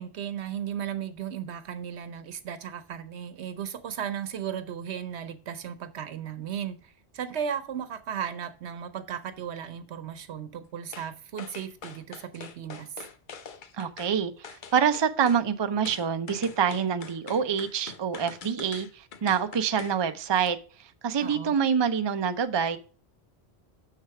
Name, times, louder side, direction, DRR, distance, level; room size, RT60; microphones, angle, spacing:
voice 1, 0.0-12.9 21.2-21.6, right 8 dB, 80° right, 1.1 m, -35 dB
sound 1, 10.9-11.1 11.4-14.1 14.4-15.4 15.9-20.0 20.4-20.5, left 6 dB, 55° left, 0.8 m, -44 dB
voice 2, 13.7-22.8, right 7 dB, 35° right, 0.5 m, -26 dB
6.7 x 6.4 x 4.7 m
omnidirectional pair, 1.1 m